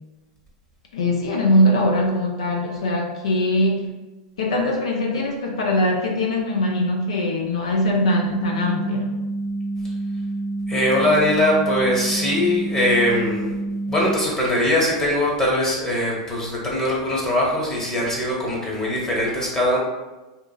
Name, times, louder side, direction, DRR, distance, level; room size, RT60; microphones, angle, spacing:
voice 1, 0.9-3.9 4.4-9.1, left 1 dB, 80° left, 1 dB, 0.5 m, -21 dB
sound 1, 7.8-14.1, right 2 dB, 20° right, 0.4 m, -28 dB
voice 2, 10.7-13.5 13.9-19.8, left 1 dB, 20° left, -4 dB, 0.9 m, -21 dB
2.9 x 2.3 x 2.2 m, 1.1 s
hypercardioid pair, 110°, 3 cm